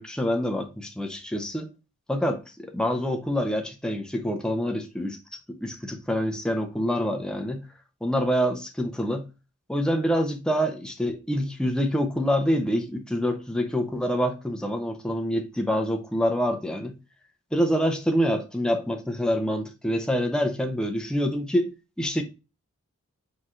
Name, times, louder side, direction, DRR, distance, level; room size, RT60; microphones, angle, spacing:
voice 1, 0.0-1.7 2.1-5.2 5.5-7.6 8.0-9.3 9.7-16.9 17.5-21.7 22.0-22.2, equal, 5° left, 0.5 m, -26 dB
4.5 x 3.8 x 2.3 m
head